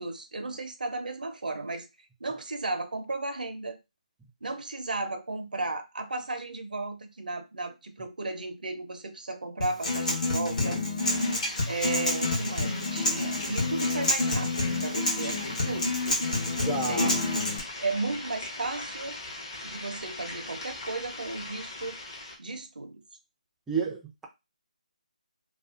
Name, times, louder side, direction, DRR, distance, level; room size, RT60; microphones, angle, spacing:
voice 1, 0.0-1.9 2.2-3.8 4.4-10.8 11.7-14.5 14.8-16.2 16.9-17.2 17.8-19.2 19.6-22.0 22.4-23.0, right 3 dB, 85° right, 0.6 m, -34 dB
Acoustic guitar, 9.6-17.6, left 2 dB, 60° left, 1.0 m, -28 dB
sound 1, 11.0-22.4, left 2 dB, 35° left, 0.7 m, -40 dB
voice 2, 16.6-17.1 23.7-24.2, right 4 dB, 5° right, 0.3 m, -30 dB
2.4 x 2.3 x 2.4 m
hypercardioid pair, 160°, 4 cm